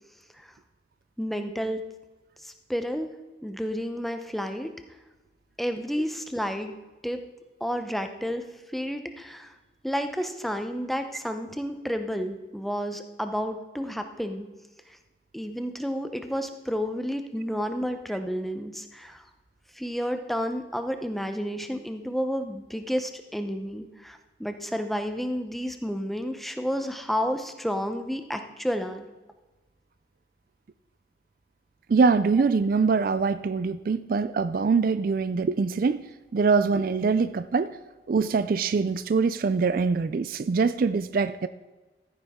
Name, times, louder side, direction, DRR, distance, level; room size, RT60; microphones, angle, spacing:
voice 1, 1.2-1.8 2.4-3.1 3.4-4.7 5.6-6.7 7.0-7.2 7.6-8.4 8.7-9.5 9.8-14.5 15.3-19.2 19.7-29.1, equal, ahead, 7 dB, 0.7 m, -31 dB
voice 2, 31.9-36.1 36.3-37.8 38.1-41.5, right 4 dB, 50° right, 14 dB, 0.3 m, -23 dB
14.5 x 9.3 x 3.6 m, 1.2 s
head